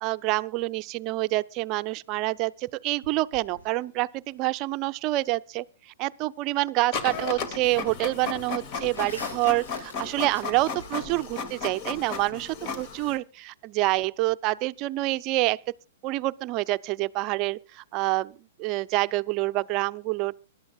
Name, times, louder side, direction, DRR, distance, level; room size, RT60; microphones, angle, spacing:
voice 1, 0.0-15.6 16.0-20.4, right 19 dB, 40° right, 0.6 m, -27 dB
sound 1, 3.0-4.3 6.5-6.6 7.0-7.8 8.1-11.3, left 2 dB, 80° left, 7.7 m, -45 dB
Printer, 6.9-13.2, left 5 dB, 40° left, 2.0 m, -35 dB
24.5 x 12.0 x 2.4 m
hypercardioid pair, 115°, 0 cm